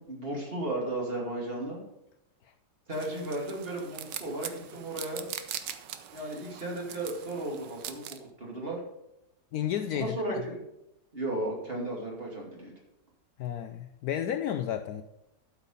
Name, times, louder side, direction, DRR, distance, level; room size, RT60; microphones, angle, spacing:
voice 1, 0.0-1.8 2.9-5.3 6.1-8.8 9.9-10.6 11.1-12.7, right 1 dB, 35° right, -2 dB, 2.6 m, -35 dB
sound 1, 2.9-8.2, right 10 dB, 90° right, 1.4 m, -42 dB
voice 2, 9.5-10.4 13.4-15.0, left 10 dB, 70° left, 8 dB, 1.0 m, -32 dB
12.0 x 6.0 x 5.5 m, 0.87 s
omnidirectional pair, 1.9 m